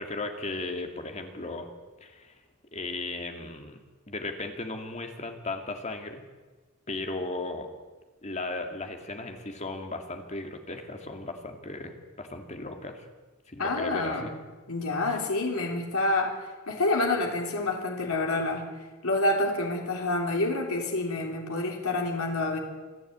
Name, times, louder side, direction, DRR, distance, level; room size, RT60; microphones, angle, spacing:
voice 1, 0.0-1.7 2.0-2.3 2.7-3.8 4.1-6.2 6.9-7.7 8.2-13.1 13.5-14.3 15.1-15.2, left 2 dB, 30° left, 5 dB, 2.4 m, -36 dB
voice 2, 13.6-14.3 14.7-16.3 16.7-18.7 19.0-22.6, left 2 dB, 70° left, 1 dB, 3.5 m, -28 dB
27.0 x 11.5 x 8.8 m, 1.3 s
head